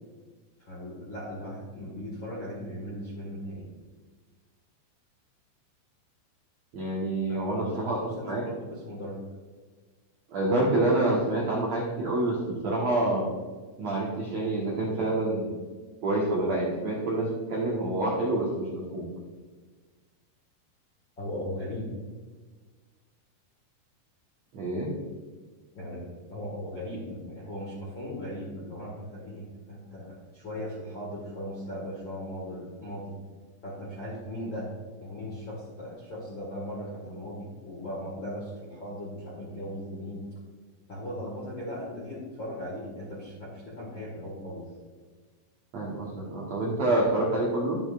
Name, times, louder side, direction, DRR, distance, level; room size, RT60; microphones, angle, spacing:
voice 1, 0.6-3.7 7.3-9.2 21.2-21.9 25.7-26.0 26.3-33.1 33.6-34.7 35.0-40.2 40.9-44.6, equal, 45° left, -6 dB, 1.5 m, -38 dB
voice 2, 6.7-8.5 10.3-13.3 13.8-15.5 16.0-18.7 18.9-19.0 24.5-24.9 45.7-47.8, right 2 dB, 75° right, -4 dB, 1.6 m, -27 dB
11.0 x 8.9 x 2.5 m, 1.4 s
omnidirectional pair, 5.3 m